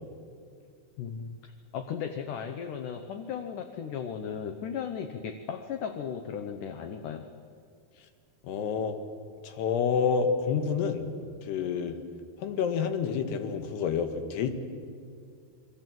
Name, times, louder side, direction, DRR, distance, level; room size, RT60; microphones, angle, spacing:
voice 1, 1.0-7.3, left 7 dB, 70° left, 6 dB, 2.2 m, -36 dB
voice 2, 8.4-9.0 9.4-11.1 11.5-12.0 12.4-14.5, left 6 dB, 90° left, 7 dB, 3.7 m, -28 dB
28.0 x 22.5 x 7.8 m, 2.3 s
omnidirectional pair, 4.7 m